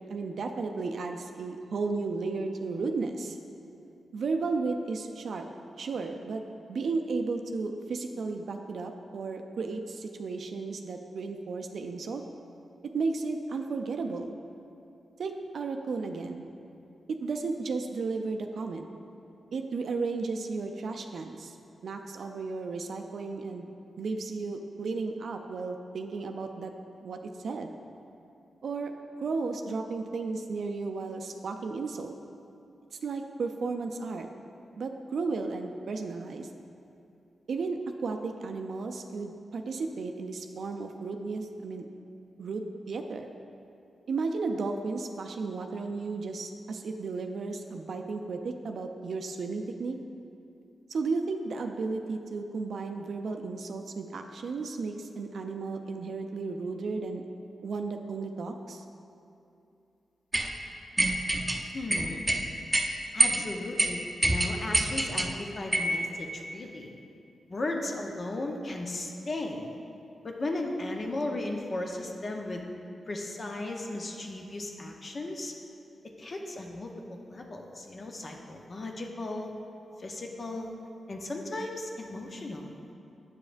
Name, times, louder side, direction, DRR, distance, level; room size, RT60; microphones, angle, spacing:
voice 1, 0.1-3.4 4.1-5.5 5.8-6.4 6.7-12.2 12.9-14.4 15.2-16.5 17.1-18.9 19.5-21.6 21.8-23.7 24.0-26.7 27.0-27.7 28.6-28.9 29.2-32.1 33.0-34.3 34.8-36.5 37.5-41.9 42.4-43.3 44.1-50.0 50.9-57.2 57.6-58.8, right 4 dB, 70° right, 5 dB, 0.3 m, -34 dB
sound 1, 60.3-60.5 61.0-61.6 61.9-62.4 62.7-62.9 63.2-63.4 63.8-63.9 64.2-65.3 65.7-66.0, right 1 dB, 20° right, 0.6 m, -25 dB
voice 2, 61.7-62.2 63.1-66.9 67.5-69.7 70.2-72.6 73.1-75.5 76.2-79.5 80.0-80.7 81.1-82.6, left 2 dB, 50° left, 1 dB, 0.7 m, -36 dB
8.2 x 4.9 x 2.5 m, 2.7 s
supercardioid pair, 40°, 0 cm